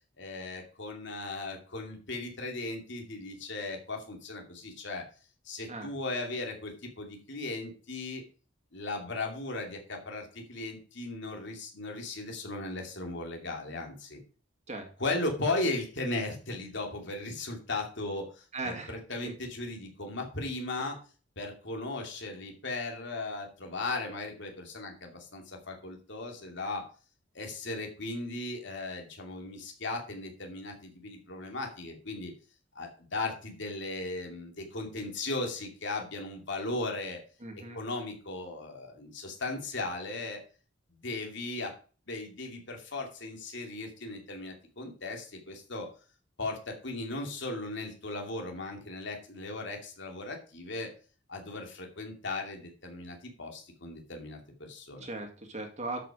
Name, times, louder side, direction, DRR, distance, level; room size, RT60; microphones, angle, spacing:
voice 1, 0.2-5.0 5.4-8.2 8.7-14.2 15.0-21.0 21.4-26.8 27.3-32.3 32.7-37.2 37.7-40.4 41.0-41.7 42.1-45.9 46.4-50.9 51.3-55.1, left 2 dB, 65° left, 2 dB, 2.6 m, -37 dB
voice 2, 18.5-18.9 37.4-37.8 55.0-56.1, right 2 dB, 35° right, 4 dB, 2.2 m, -38 dB
12.5 x 5.9 x 4.9 m, 0.37 s
head